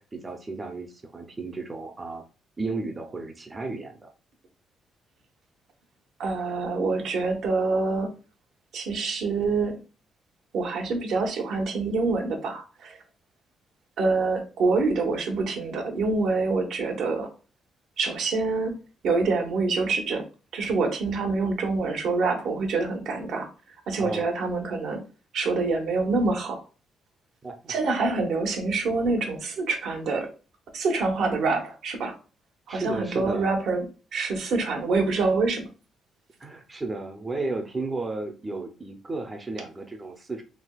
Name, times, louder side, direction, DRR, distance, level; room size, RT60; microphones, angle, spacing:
voice 1, 0.0-2.2 2.6-4.1 24.0-24.3 27.4-27.7 28.1-28.2 32.7-33.5 36.4-40.4, right 3 dB, 25° right, 4 dB, 0.5 m, -34 dB
voice 2, 6.2-8.1 8.7-9.8 10.5-13.0 14.0-17.3 18.0-18.8 19.0-20.2 20.5-23.5 23.9-25.0 25.3-26.6 27.7-30.3 30.7-32.1 32.7-33.8 34.1-35.7, right 3 dB, 75° right, 3 dB, 0.8 m, -26 dB
3.3 x 2.8 x 2.3 m, 0.35 s
cardioid pair, 90°, 0 cm